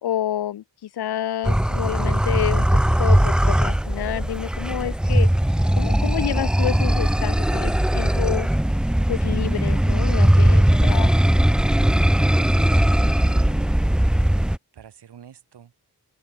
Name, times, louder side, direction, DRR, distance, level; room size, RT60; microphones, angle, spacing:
voice 1, 0.0-5.3 5.8-8.5 9.1-11.1, left 11 dB, 75° left, 0.8 m, -29 dB
sound 1, 1.4-14.6, right 1 dB, ahead, 0.4 m, -19 dB
voice 2, 12.4-12.9 13.2-13.8 14.7-15.7, right 8 dB, 85° right, 5.4 m, -45 dB
open air
wide cardioid pair, 160°, 39 cm